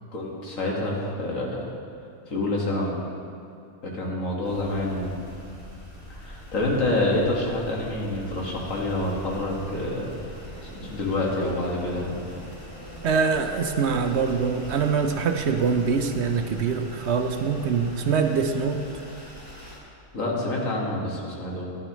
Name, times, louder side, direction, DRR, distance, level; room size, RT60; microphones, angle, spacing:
voice 1, 0.1-1.6 2.3-2.9 3.8-5.1 6.1-10.1 10.6-12.2 20.1-21.7, left 2 dB, 80° left, -3 dB, 2.0 m, -27 dB
sound 1, 4.4-19.8, equal, 30° left, 1.7 m, -42 dB
voice 2, 13.0-18.8, right 5 dB, 65° right, 6 dB, 0.8 m, -24 dB
13.5 x 10.5 x 3.0 m, 2.5 s
omnidirectional pair, 1.3 m